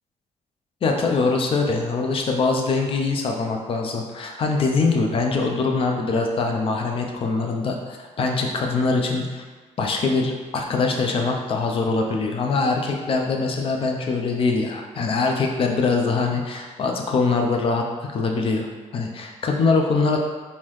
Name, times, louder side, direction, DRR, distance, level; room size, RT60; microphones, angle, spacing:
voice 1, 0.8-9.4 9.8-17.8 18.1-18.7 18.9-20.2, left 3 dB, 45° left, 2 dB, 0.5 m, -23 dB
3.6 x 2.7 x 3.1 m, 1.4 s
cardioid pair, 135°, 12 cm